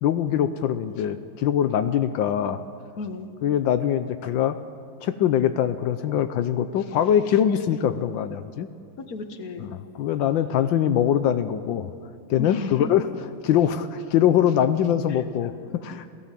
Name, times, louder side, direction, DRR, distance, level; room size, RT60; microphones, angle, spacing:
voice 1, 0.0-2.6 3.4-4.6 5.0-8.7 10.0-11.9 12.3-13.0 13.4-16.0, left 10 dB, 85° left, 11 dB, 1.5 m, -23 dB
voice 2, 3.0-3.3 7.5-7.7 9.0-9.7 12.4-12.9 15.1-15.2, left 3 dB, 55° left, 8 dB, 1.8 m, -34 dB
28.5 x 17.0 x 7.5 m, 2.3 s
omnidirectional pair, 2.1 m